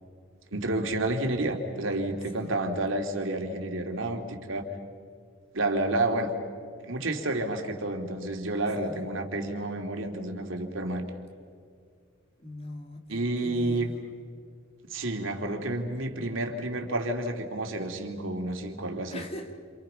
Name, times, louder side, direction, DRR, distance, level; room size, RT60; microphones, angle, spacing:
voice 1, 0.5-4.6 5.5-6.3 6.8-11.0 13.1-13.9 14.9-19.2, right 2 dB, 70° right, 4 dB, 2.8 m, -30 dB
voice 2, 12.4-13.9 19.1-19.5, left 1 dB, 30° left, 3 dB, 2.6 m, -41 dB
30.0 x 28.0 x 5.7 m, 2.2 s
head